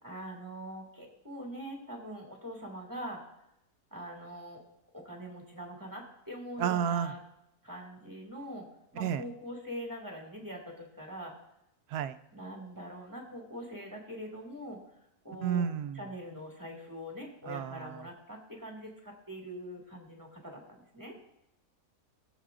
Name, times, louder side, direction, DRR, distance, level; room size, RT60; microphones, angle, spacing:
voice 1, 0.0-3.2 3.9-4.6 4.9-7.2 7.6-8.7 8.9-11.3 12.3-14.8 15.2-15.7 15.9-21.2, equal, 10° right, -1 dB, 2.0 m, -43 dB
voice 2, 6.6-7.1 9.0-9.2 11.9-12.2 15.4-16.0 17.5-18.0, right 8 dB, 85° right, 11 dB, 1.1 m, -31 dB
21.0 x 7.3 x 2.5 m, 0.82 s
omnidirectional pair, 1.6 m